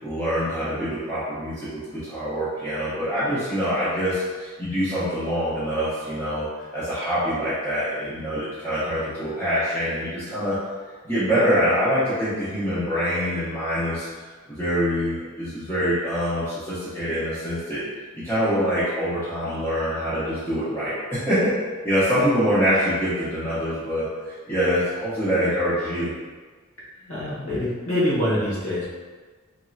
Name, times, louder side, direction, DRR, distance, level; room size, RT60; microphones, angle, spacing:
voice 1, 0.0-6.5 6.7-10.6 11.0-14.1 14.5-17.8 18.1-21.5 21.8-26.1, equal, 10° left, -13 dB, 0.6 m, -25 dB
voice 2, 27.1-28.8, left 1 dB, 75° left, -8 dB, 1.2 m, -25 dB
2.9 x 2.6 x 2.3 m, 1.4 s
head